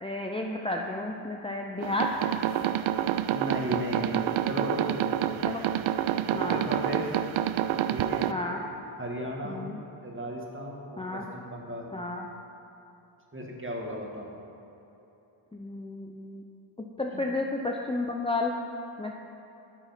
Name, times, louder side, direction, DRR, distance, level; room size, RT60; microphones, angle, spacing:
voice 1, 0.0-2.1 5.4-5.6 6.3-6.6 8.3-8.6 9.4-9.8 11.0-11.3 11.9-12.3 15.5-16.4 17.0-18.5 19.0-19.1, left 2 dB, 10° left, 0 dB, 0.7 m, -32 dB
sound 1, 1.8-8.3, right 10 dB, 70° right, 0.5 m, -28 dB
voice 2, 3.3-5.4 6.3-7.2 7.9-8.3 9.0-9.6 10.0-11.9 13.3-14.3 17.1-17.3, equal, 25° right, -1 dB, 1.9 m, -35 dB
9.3 x 7.0 x 5.8 m, 3.0 s
cardioid pair, 60°, 50 cm